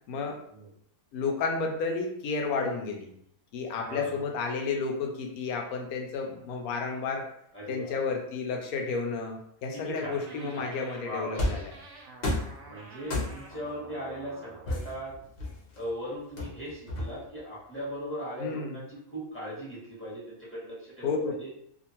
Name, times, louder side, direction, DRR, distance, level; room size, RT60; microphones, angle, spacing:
voice 1, 0.1-0.4 1.1-3.1 3.5-7.3 7.7-11.7 18.4-18.8 21.0-21.3, left 4 dB, 90° left, 2 dB, 1.1 m, -31 dB
voice 2, 3.7-4.2 7.5-8.1 9.7-10.7 11.0-11.5 12.6-15.2 15.7-21.5, equal, 10° left, -8 dB, 0.9 m, -39 dB
sound 1, 9.9-14.9, right 3 dB, 65° right, 0.8 m, -49 dB
sound 2, 11.4-11.7 12.2-12.6 13.1-13.6 14.7-15.8 16.4-17.4, left 1 dB, 50° left, 0.8 m, -31 dB
2.7 x 2.5 x 2.8 m, 0.69 s
omnidirectional pair, 1.5 m